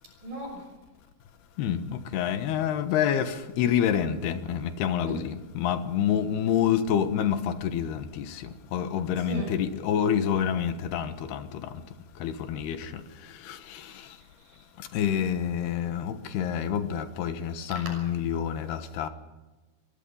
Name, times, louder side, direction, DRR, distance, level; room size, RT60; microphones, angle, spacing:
voice 1, 0.2-0.7 5.0-5.2 9.2-9.5 14.4-14.7 17.7-17.8, right 3 dB, 55° right, 7.7 m, -37 dB
voice 2, 2.1-8.3 8.7-11.4 12.2-12.8 13.5-13.6 14.9-19.1, left 9 dB, 80° left, 3.3 m, -27 dB
23.5 x 22.0 x 5.6 m
omnidirectional pair, 4.6 m